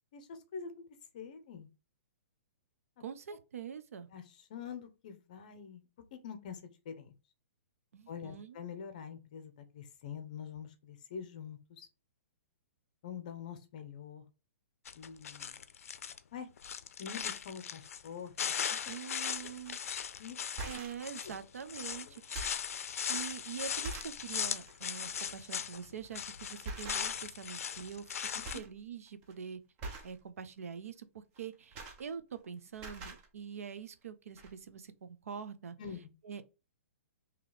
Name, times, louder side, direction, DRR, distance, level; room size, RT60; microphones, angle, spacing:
voice 1, 0.1-0.7 1.1-1.7 4.1-5.8 6.1-7.1 8.1-11.9 13.0-14.2 15.0-15.6 16.3-16.5 17.0-18.3 18.7-18.8 19.4-19.5 19.9-20.4 21.2-21.3 22.0-22.2 28.5-28.6 35.8-36.1, left 7 dB, 35° left, 0.6 m, -45 dB
voice 2, 3.0-4.1 7.9-8.6 18.9-19.8 20.6-22.4 23.1-29.6 30.0-35.8 36.2-36.5, right 7 dB, 85° right, 0.6 m, -44 dB
sound 1, 14.8-16.2 16.6-18.1 18.4-25.9 26.1-28.6, left 8 dB, 80° left, 0.4 m, -38 dB
sound 2, 19.7-19.8 20.4-21.1 21.7-21.9 22.2-22.7 23.3-23.4 23.8-24.2 24.6-24.8 26.0-26.2 26.6-27.4 27.7-28.2 28.4-28.8 29.1-29.3 29.8-30.2 31.4-32.5 32.7-33.3 34.0-34.1 34.4-34.5, right 3 dB, 20° right, 0.5 m, -44 dB
3.9 x 2.9 x 3.2 m
hypercardioid pair, 175°, 8 cm